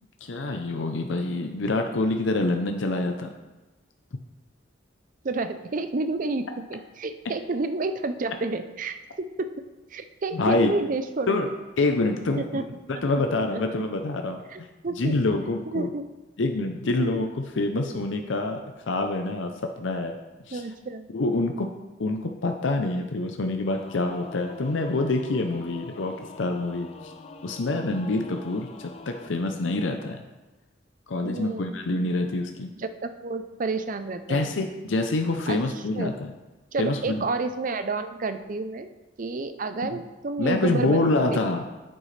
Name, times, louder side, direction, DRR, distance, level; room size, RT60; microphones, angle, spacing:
voice 1, 0.2-3.3 10.3-10.7 11.3-11.5 11.8-12.6 13.0-14.4 15.0-15.9 16.4-18.6 18.9-19.5 19.8-20.1 20.5-20.6 21.1-21.7 22.0-27.1 27.4-30.2 31.1-32.7 34.3-36.3 36.8-37.2 39.9-40.0 40.4-41.6, left 2 dB, 85° left, 4 dB, 0.6 m, -26 dB
voice 2, 5.2-9.5 9.9-11.4 12.4-12.8 13.5-13.6 14.5-15.1 15.7-16.0 16.9-17.3 20.5-21.1 31.2-31.8 32.8-34.5 35.5-35.6 35.9-36.1 36.7-38.9 39.2-41.4, right 3 dB, 45° right, 9 dB, 0.5 m, -30 dB
Singing / Musical instrument, 23.7-29.3, left 3 dB, 35° left, 0.5 m, -44 dB
9.7 x 7.8 x 3.3 m, 1.2 s
head